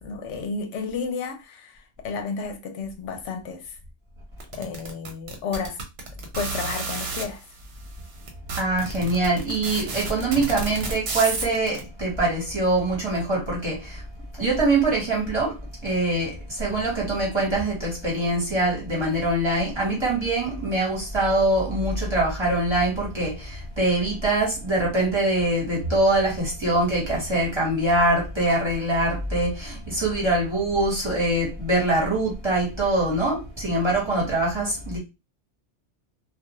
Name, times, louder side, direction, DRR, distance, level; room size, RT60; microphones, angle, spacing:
voice 1, 0.0-3.8 4.5-5.8 6.3-7.5, left 5 dB, 80° left, 0.9 m, -32 dB
sound 1, 4.4-7.2 7.9-8.0 8.3-11.8, right 3 dB, 60° right, 0.9 m, -31 dB
voice 2, 8.5-14.0 14.3-35.0, right 2 dB, 25° right, 1.1 m, -23 dB
2.4 x 2.3 x 2.9 m
omnidirectional pair, 1.2 m